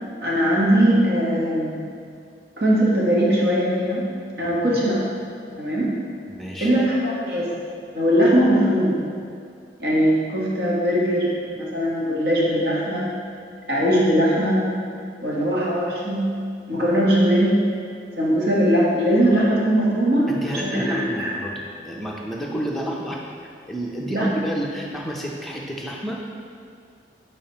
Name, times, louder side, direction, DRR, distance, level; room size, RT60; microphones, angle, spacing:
voice 1, 0.2-1.8 2.6-4.1 4.4-5.0 5.6-5.9 6.6-7.5 7.9-9.0 9.8-13.1 13.7-14.6 15.2-16.3 16.7-17.6 18.2-20.3 20.6-21.3 24.1-24.3, equal, 60° right, -6 dB, 1.4 m, -20 dB
voice 2, 4.4-4.8 6.3-6.8 20.3-23.2 23.7-26.2, equal, ahead, -3 dB, 0.6 m, -30 dB
8.7 x 4.0 x 3.0 m, 2.3 s
head